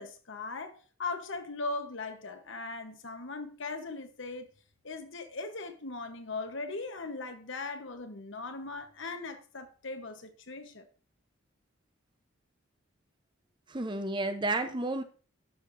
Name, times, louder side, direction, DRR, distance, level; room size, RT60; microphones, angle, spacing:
voice 1, 0.0-4.5 4.8-10.8, left 3 dB, 65° left, 1.0 m, -39 dB
voice 2, 13.7-15.0, right 2 dB, 20° right, 0.6 m, -31 dB
11.0 x 6.6 x 2.6 m
head